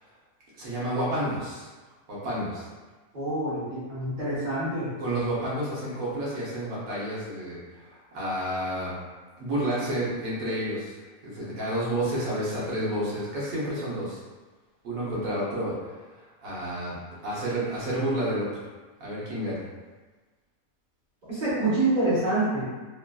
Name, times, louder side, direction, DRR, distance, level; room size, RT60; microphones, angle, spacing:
voice 1, 0.6-1.7 2.1-2.7 5.0-9.0 9.4-10.9 11.2-14.2 14.8-15.8 16.1-18.7 19.0-19.7, right 1 dB, 60° right, -7 dB, 1.3 m, -30 dB
voice 2, 3.1-4.9 21.3-22.6, right 2 dB, 30° right, -11 dB, 1.0 m, -26 dB
3.1 x 2.5 x 2.2 m, 1.3 s
omnidirectional pair, 1.7 m